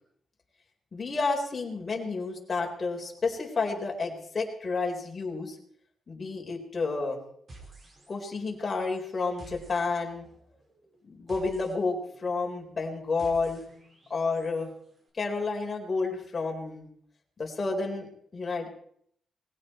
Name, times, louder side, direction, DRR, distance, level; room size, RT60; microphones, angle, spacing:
voice 1, 0.9-5.6 6.1-7.2 8.1-10.3 11.0-13.6 14.1-14.7 15.1-16.9 17.4-18.7, left 4 dB, 35° left, 0 dB, 4.2 m, -30 dB
sound 1, 7.5-8.4 8.7-14.7, right 2 dB, 40° right, 5.0 m, -52 dB
20.0 x 16.0 x 4.5 m, 0.67 s
cardioid pair, 105°, 0 cm